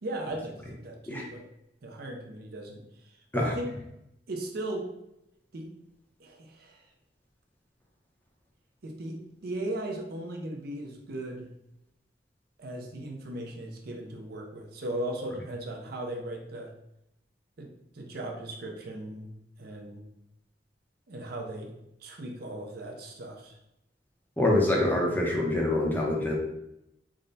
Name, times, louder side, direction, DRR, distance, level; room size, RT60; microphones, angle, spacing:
voice 1, 0.0-1.4 1.8-3.7 4.3-4.9 5.5-5.7 6.2-6.8 8.8-11.5 12.6-16.7 17.6-17.7 17.9-19.3 19.6-20.0 21.1-21.7 22.0-23.6, right 1 dB, 60° right, 2 dB, 0.6 m, -37 dB
voice 2, 24.4-26.3, left 1 dB, 10° left, -2 dB, 0.7 m, -25 dB
3.6 x 2.2 x 3.9 m, 0.82 s
head